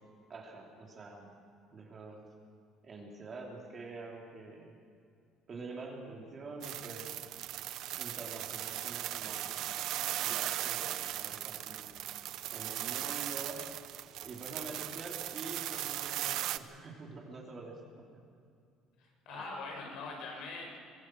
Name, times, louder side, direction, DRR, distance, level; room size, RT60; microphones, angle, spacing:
voice 1, 0.3-1.3 1.7-2.2 2.8-4.7 5.5-7.2 8.0-9.6 10.0-11.9 12.5-13.6 14.2-17.8 18.1-18.2 19.3-19.6, right 3 dB, 35° right, -1 dB, 3.2 m, -46 dB
sound 1, 6.6-16.6, right 13 dB, 65° right, 0.7 m, -38 dB
voice 2, 19.0-20.8, left 3 dB, 75° left, 0 dB, 6.5 m, -43 dB
24.5 x 18.0 x 6.3 m, 2.4 s
cardioid pair, 130°, 0 cm